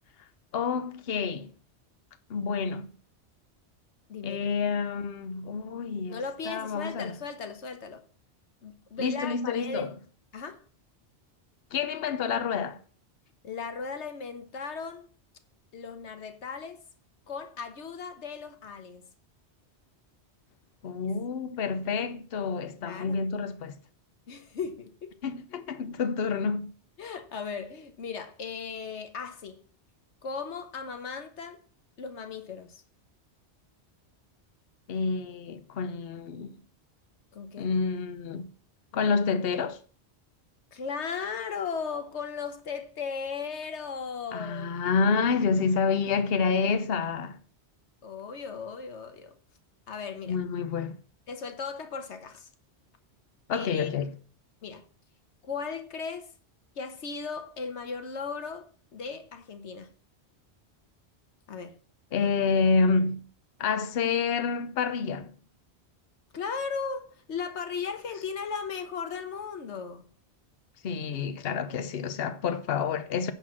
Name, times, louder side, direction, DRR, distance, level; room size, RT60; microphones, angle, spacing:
voice 1, 0.5-1.5 2.3-2.9 4.2-6.2 6.5-7.2 9.0-9.9 11.7-12.8 20.8-23.8 25.2-26.7 34.9-36.6 37.6-38.5 38.9-39.8 44.3-47.4 50.3-51.0 53.5-54.1 62.1-63.2 63.6-65.3 70.8-73.3, left 5 dB, 60° left, 1.0 m, -28 dB
voice 2, 4.1-4.4 6.1-8.0 8.6-9.9 10.3-10.6 13.4-15.1 15.7-16.8 17.3-19.1 22.8-23.2 24.3-25.2 27.0-29.6 30.2-31.6 32.0-32.8 37.3-37.7 40.7-44.7 48.0-49.4 49.9-50.4 51.3-52.5 53.5-53.9 54.6-54.9 55.4-56.3 56.7-59.9 61.5-61.8 66.3-70.0, left 5 dB, 85° left, 1.4 m, -37 dB
10.0 x 4.3 x 7.3 m
omnidirectional pair, 1.1 m